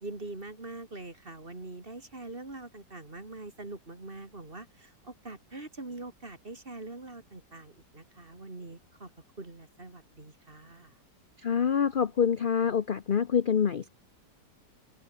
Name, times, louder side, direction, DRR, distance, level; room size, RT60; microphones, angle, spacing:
voice 1, 0.0-9.1 9.4-11.0, right 2 dB, 30° right, 3.3 m, -43 dB
voice 2, 11.4-13.9, left 7 dB, 50° left, 0.6 m, -26 dB
open air
omnidirectional pair, 1.9 m